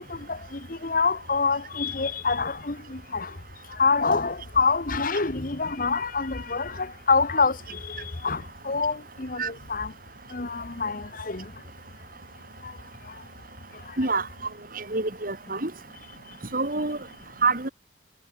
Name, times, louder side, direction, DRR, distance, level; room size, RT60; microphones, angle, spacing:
voice 1, 0.0-3.3 3.8-9.9 10.3-11.4 12.6-12.7, left 4 dB, 50° left, 1.3 m, -26 dB
voice 2, 14.7-15.7 16.5-17.0 17.4-17.7, right 3 dB, 50° right, 3.0 m, -26 dB
head